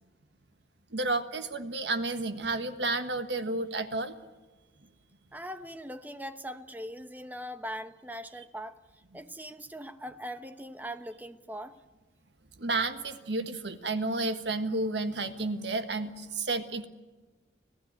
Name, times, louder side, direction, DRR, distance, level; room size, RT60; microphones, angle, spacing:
voice 1, 0.9-4.1 12.6-16.9, right 2 dB, 70° right, 9 dB, 1.5 m, -31 dB
voice 2, 5.3-8.8 9.1-11.7, equal, 10° right, 10 dB, 1.0 m, -41 dB
26.0 x 16.0 x 9.0 m, 1.2 s
head